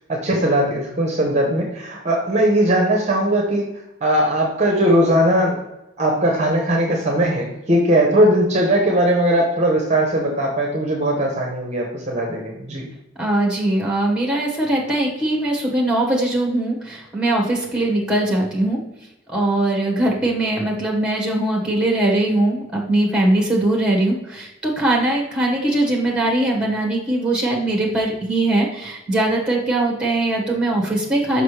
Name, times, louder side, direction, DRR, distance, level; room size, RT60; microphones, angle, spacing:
voice 1, 0.1-3.7 4.0-5.6 6.0-12.8, right 1 dB, 35° right, 1 dB, 0.8 m, -19 dB
voice 2, 13.2-18.8 19.3-31.4, right 1 dB, 5° right, -1 dB, 1.5 m, -21 dB
5.9 x 5.1 x 3.3 m, 0.95 s
head